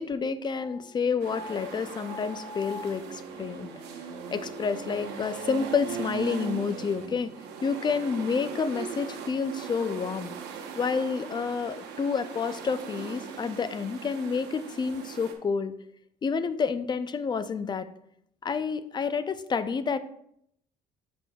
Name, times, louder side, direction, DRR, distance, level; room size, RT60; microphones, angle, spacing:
voice 1, 0.0-7.3 7.6-10.3 10.8-15.7 16.2-17.9 18.4-20.0, left 5 dB, 25° left, 12 dB, 0.4 m, -29 dB
sound 1, 1.2-15.3, right 6 dB, 80° right, 1.0 m, -40 dB
7.9 x 5.9 x 2.3 m, 0.72 s
cardioid pair, 110°, 17 cm